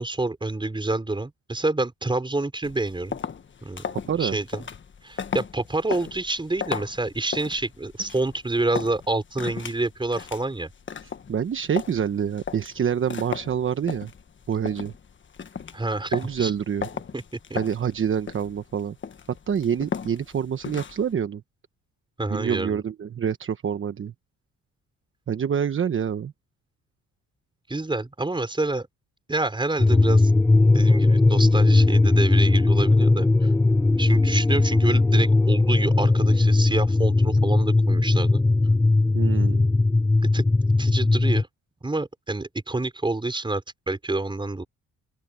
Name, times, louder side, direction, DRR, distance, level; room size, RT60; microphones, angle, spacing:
voice 1, 0.0-3.2 3.6-3.8 4.2-4.6 5.0-10.7 15.7-16.5 17.1-17.2 22.2-22.8 27.7-28.9 29.3-30.3 30.7-33.5 34.0-38.4 40.3-40.4 40.8-41.5 41.8-44.6, right 2 dB, 15° right, 5.0 m, -28 dB
sound 1, 2.6-21.1, left 6 dB, 40° left, 1.5 m, -36 dB
voice 2, 4.1-4.4 11.0-14.1 14.5-14.9 16.1-16.9 17.5-19.0 19.5-21.4 22.3-24.1 25.3-26.3 39.1-39.7, right 8 dB, 40° right, 1.1 m, -26 dB
sound 2, 29.8-41.4, left 2 dB, 10° left, 0.3 m, -19 dB
open air
cardioid pair, 90°, 30 cm